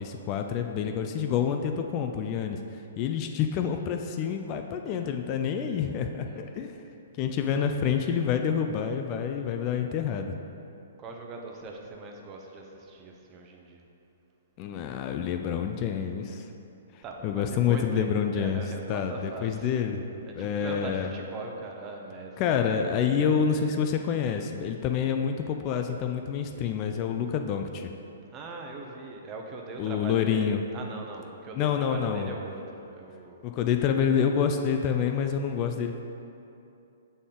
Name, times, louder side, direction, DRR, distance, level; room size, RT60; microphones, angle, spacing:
voice 1, 0.0-6.8 7.2-10.3 14.6-16.5 16.9-18.6 18.9-20.0 20.4-21.1 22.4-27.9 29.8-30.6 31.6-32.3 33.4-36.0, left 7 dB, 35° left, 5 dB, 0.3 m, -28 dB
voice 2, 6.2-6.7 11.0-13.8 17.0-19.7 20.2-22.4 23.1-23.6 26.5-26.8 28.3-33.5, right 3 dB, 25° right, 1 dB, 0.7 m, -41 dB
6.6 x 4.1 x 3.7 m, 2.8 s
hypercardioid pair, 135°, 0 cm